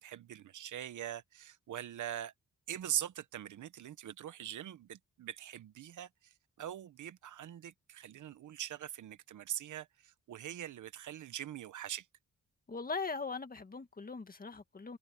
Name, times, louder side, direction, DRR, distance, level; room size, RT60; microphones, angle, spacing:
voice 1, 0.0-2.3 2.7-6.1 6.6-12.1, right 11 dB, 80° right, 1.0 m, -42 dB
voice 2, 12.7-15.0, left 4 dB, 30° left, 2.0 m, -40 dB
cardioid pair, 105°, 30 cm